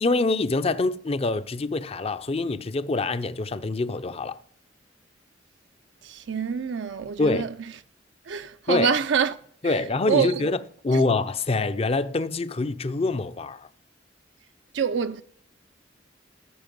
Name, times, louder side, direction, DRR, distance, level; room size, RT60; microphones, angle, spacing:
voice 1, 0.0-4.4 7.2-7.5 8.7-8.9 9.6-13.7, left 3 dB, 30° left, 0.5 m, -25 dB
voice 2, 6.0-7.5 8.3-9.3 9.6-9.8 10.1-10.3 10.9-11.0 14.7-15.2, right 7 dB, 75° right, 0.5 m, -26 dB
14.0 x 5.7 x 5.3 m
head